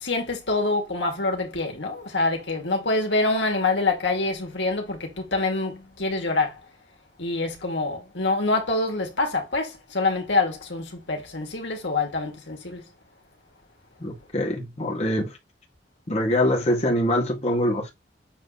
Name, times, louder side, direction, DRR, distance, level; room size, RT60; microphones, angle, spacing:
voice 1, 0.0-6.6 7.2-12.8, left 3 dB, 75° left, 2.4 m, -26 dB
voice 2, 14.0-15.4 16.1-17.9, left 1 dB, 35° left, 1.9 m, -24 dB
7.7 x 3.4 x 4.1 m
head